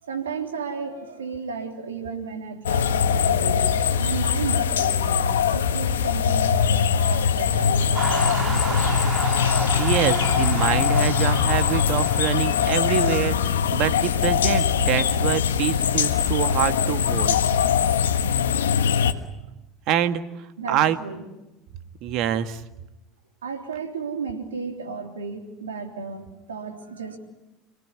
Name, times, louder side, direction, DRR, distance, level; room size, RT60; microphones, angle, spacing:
voice 1, 0.0-3.7 4.0-8.9 20.6-21.3 23.4-27.2, right 5 dB, 90° right, 4 dB, 3.5 m, -34 dB
sound 1, 2.7-19.1, left 7 dB, 85° left, 1.4 m, -22 dB
sound 2, 7.9-13.2, right 5 dB, 30° right, 2.3 m, -31 dB
voice 2, 9.7-17.4 19.9-20.2 20.7-21.0 22.0-22.6, right 11 dB, 60° right, 10 dB, 1.7 m, -25 dB
27.5 x 18.5 x 9.9 m, 0.98 s
hypercardioid pair, 80°, 0 cm